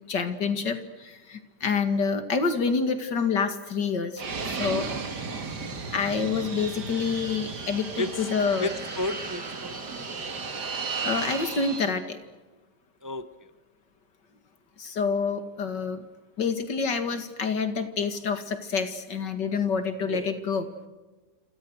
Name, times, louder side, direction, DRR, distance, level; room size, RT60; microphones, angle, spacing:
voice 1, 0.1-4.9 5.9-8.7 11.0-12.2 14.8-16.0 16.4-20.7, left 5 dB, 80° left, 9 dB, 2.8 m, -27 dB
Fixed-wing aircraft airplane, 4.2-12.0, right 4 dB, 70° right, 2.9 m, -34 dB
voice 2, 8.6-9.7 13.0-13.5 20.1-20.3, left 1 dB, 15° right, 11 dB, 0.7 m, -32 dB
29.5 x 27.0 x 6.4 m, 1.3 s
omnidirectional pair, 1.9 m